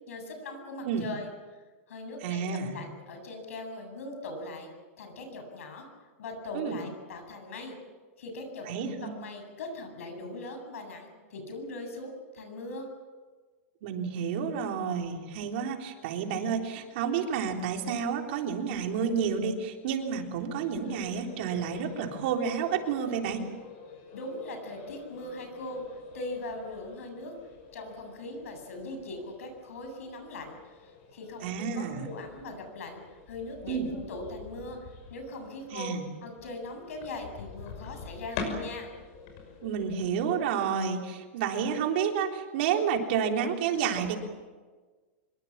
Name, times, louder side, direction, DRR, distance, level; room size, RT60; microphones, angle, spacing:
voice 1, 0.1-1.3 1.9-4.7 5.0-5.9 6.2-7.7 8.2-12.9 24.1-25.8 26.1-27.3 27.7-30.6 30.8-33.0 33.3-34.8 35.1-35.9 36.2-38.9, left 2 dB, 85° left, 5 dB, 8.0 m, -40 dB
voice 2, 2.2-2.8 6.5-6.8 8.7-9.2 13.8-23.4 31.4-32.1 33.7-33.9 35.7-36.1 39.6-44.2, right 7 dB, 50° right, 3 dB, 3.6 m, -30 dB
sound 1, 20.5-40.1, left 4 dB, 40° left, 6.0 m, -46 dB
25.5 x 22.5 x 7.5 m, 1.4 s
supercardioid pair, 165°, 7 cm